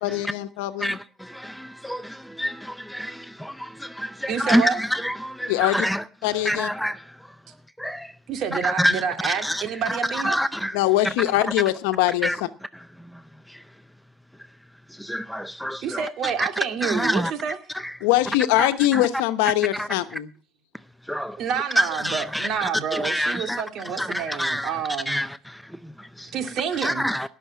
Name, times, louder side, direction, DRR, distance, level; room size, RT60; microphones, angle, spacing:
voice 1, 0.0-1.0 5.5-5.9 6.2-6.7 10.7-12.5 18.0-20.3, left 15 dB, 90° left, 1.0 m, -22 dB
voice 2, 0.8-6.0 6.4-7.3 7.8-8.1 8.5-10.8 11.0-11.1 12.2-12.4 13.0-13.2 13.5-13.6 14.9-17.3 17.7-18.0 18.6-19.1 19.7-19.9 21.1-21.4 21.8-23.6 24.0-24.8 25.1-26.3 26.8-27.3, equal, ahead, 0.5 m, -27 dB
voice 3, 4.3-4.8 8.3-10.4 15.8-17.6 21.4-25.2 26.3-27.1, right 7 dB, 55° right, 2.2 m, -28 dB
18.5 x 6.8 x 5.7 m
supercardioid pair, 105°, 0 cm